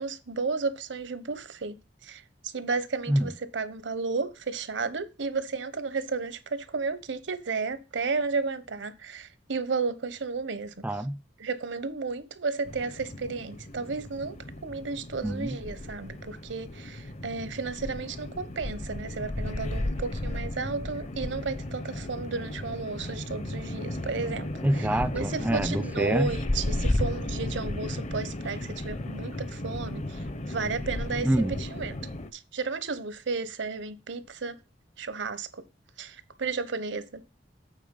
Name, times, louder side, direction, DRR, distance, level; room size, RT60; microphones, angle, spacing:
voice 1, 0.0-1.8 2.0-10.7 11.4-14.3 14.6-24.9 25.1-32.0 32.3-34.6 35.0-35.6 36.0-37.2, right 4 dB, 75° right, 0.9 m, -33 dB
voice 2, 10.8-11.2 15.2-15.6 24.6-26.4 31.2-31.5, right 1 dB, 10° right, 0.3 m, -26 dB
sound 1, 12.6-32.3, left 1 dB, 40° left, 0.7 m, -34 dB
8.4 x 4.4 x 5.2 m
head